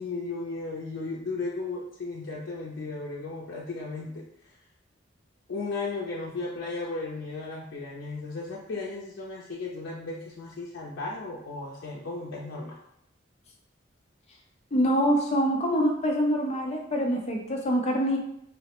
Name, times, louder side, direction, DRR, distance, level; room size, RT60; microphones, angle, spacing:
voice 1, 0.0-4.2 5.5-12.7, left 3 dB, 90° left, -4 dB, 0.5 m, -35 dB
voice 2, 14.7-18.2, equal, 35° left, 1 dB, 0.5 m, -25 dB
3.9 x 2.1 x 2.9 m, 0.75 s
head